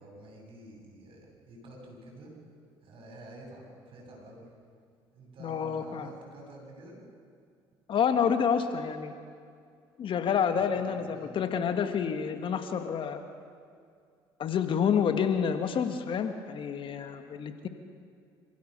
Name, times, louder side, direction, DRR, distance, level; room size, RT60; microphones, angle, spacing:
voice 1, 0.0-2.3 2.8-4.5 5.1-7.0 10.5-11.5, right 1 dB, 55° right, -1 dB, 7.7 m, -49 dB
voice 2, 5.4-6.1 7.9-9.1 10.0-13.2 14.4-17.7, left 7 dB, 55° left, 8 dB, 1.7 m, -28 dB
27.0 x 15.5 x 6.7 m, 2.3 s
supercardioid pair, 70°, 11 cm